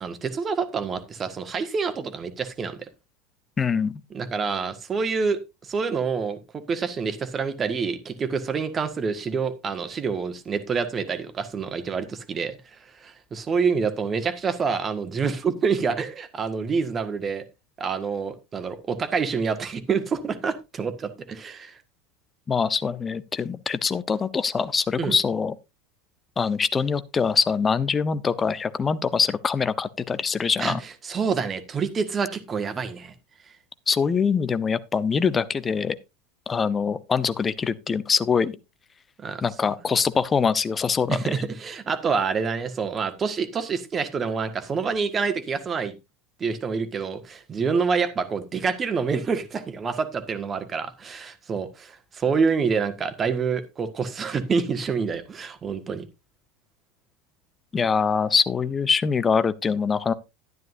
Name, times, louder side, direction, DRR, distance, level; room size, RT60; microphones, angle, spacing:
voice 1, 0.0-2.9 4.1-12.6 13.0-17.4 17.8-21.7 25.0-25.1 30.6-30.7 31.0-33.1 39.2-39.4 41.1-45.9 46.4-56.0, right 5 dB, 25° right, 1.7 m, -27 dB
voice 2, 3.6-3.9 22.5-25.5 26.4-30.8 33.9-36.0 36.5-38.6 39.4-41.2 57.7-60.1, left 5 dB, 20° left, 0.9 m, -23 dB
12.0 x 11.0 x 2.6 m
figure-of-eight pair, 75°, 0 cm